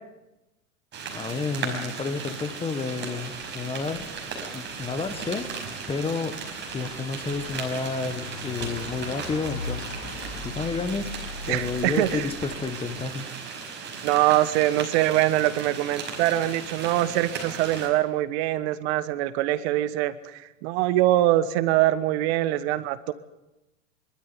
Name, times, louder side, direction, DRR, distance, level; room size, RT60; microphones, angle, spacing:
sound 1, 0.9-17.9, right 5 dB, 25° right, 5.3 m, -36 dB
voice 1, 1.1-4.1 4.5-5.6 5.9-6.5 6.7-9.9 10.4-11.2 11.5-13.3, left 4 dB, 15° left, 11 dB, 1.2 m, -30 dB
sound 2, 3.3-12.7, left 3 dB, 75° left, 4.2 m, -41 dB
voice 2, 11.5-12.3 14.0-23.1, right 14 dB, 55° right, 14 dB, 1.3 m, -23 dB
24.0 x 13.0 x 9.8 m, 0.98 s
supercardioid pair, 135°, 40 cm